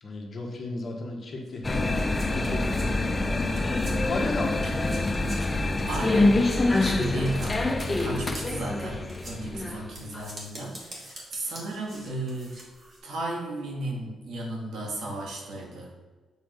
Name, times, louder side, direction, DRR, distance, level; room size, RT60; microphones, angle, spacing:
voice 1, 0.0-2.0 2.2-3.7 4.0-4.9, left 2 dB, 40° left, 0 dB, 1.3 m, -34 dB
sound 1, 1.5-4.2 4.5-13.0, right 1 dB, 40° right, 2.0 m, -45 dB
sound 2, 1.6-10.3, left 2 dB, 20° left, 0.5 m, -26 dB
voice 2, 5.9-6.4 6.8-12.6 13.0-15.9, right 1 dB, 80° right, -1 dB, 1.9 m, -34 dB
7.3 x 3.9 x 5.1 m, 1.3 s
cardioid pair, 120°, 0 cm